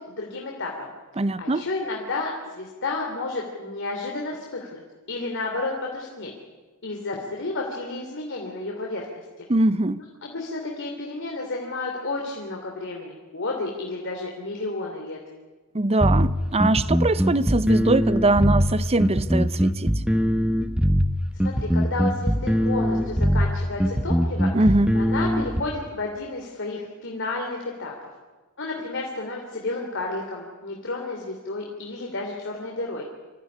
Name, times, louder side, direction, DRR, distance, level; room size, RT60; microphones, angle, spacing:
voice 1, 0.2-4.8 5.1-6.3 6.8-9.5 10.2-15.2 21.4-24.5 24.9-27.9 28.6-33.0, left 2 dB, 60° left, 3.1 m, -31 dB
voice 2, 1.2-1.7 9.5-10.0 15.7-19.9 24.5-24.9, right 2 dB, 30° right, 0.7 m, -22 dB
sound 1, 16.0-25.6, equal, 5° right, 1.0 m, -21 dB
25.5 x 15.5 x 9.9 m
head